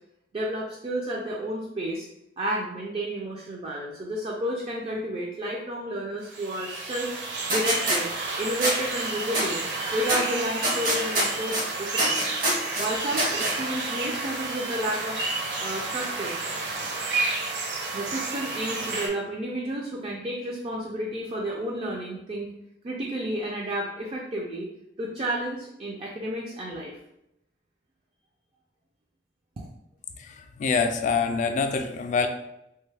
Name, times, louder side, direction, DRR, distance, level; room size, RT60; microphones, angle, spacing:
voice 1, 0.3-2.1 2.4-7.1 7.5-8.1 8.4-9.6 9.9-12.3 12.8-15.2 15.6-16.4 17.9-22.5 22.8-24.7 25.0-27.0 29.6-29.7, right 1 dB, 35° right, -2 dB, 0.4 m, -31 dB
sound 1, 6.3-19.1, right 3 dB, 80° right, 0.6 m, -31 dB
sound 2, 7.5-8.0 8.6-8.7 9.3-9.5 10.1-10.2 10.6-11.6 12.0-12.9 13.2-13.5, right 1 dB, 55° right, 0.8 m, -24 dB
voice 2, 30.2-32.3, left 5 dB, 45° left, 6 dB, 0.3 m, -25 dB
3.0 x 2.2 x 3.2 m, 0.83 s
head